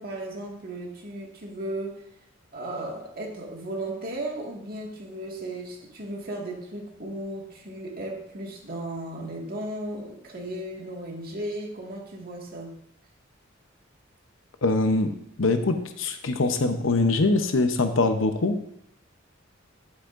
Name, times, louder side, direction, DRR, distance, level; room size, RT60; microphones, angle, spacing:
voice 1, 0.0-2.0 2.5-12.7, right 1 dB, 50° right, -1 dB, 1.9 m, -35 dB
voice 2, 14.6-15.1 15.4-18.6, left 3 dB, 75° left, 8 dB, 0.8 m, -23 dB
10.5 x 8.3 x 2.6 m, 0.76 s
head